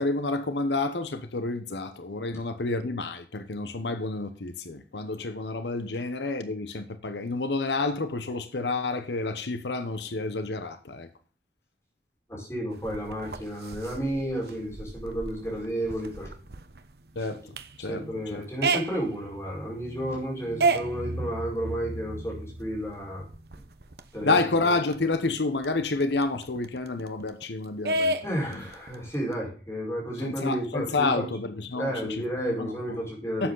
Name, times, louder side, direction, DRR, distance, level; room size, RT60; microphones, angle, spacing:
voice 1, 0.0-11.1 17.2-17.4 17.8-18.5 24.2-28.2 30.2-32.2 32.6-33.0 33.4-33.5, left 3 dB, 80° left, 0.9 m, -29 dB
voice 2, 12.3-16.3 17.8-23.3 24.1-24.4 28.2-31.3 31.7-33.5, equal, 15° left, 4.8 m, -32 dB
sound 1, 12.7-24.2 24.6-24.7 24.9-27.4 27.9-29.3, right 2 dB, 65° right, 1.0 m, -33 dB
11.5 x 7.9 x 3.9 m
head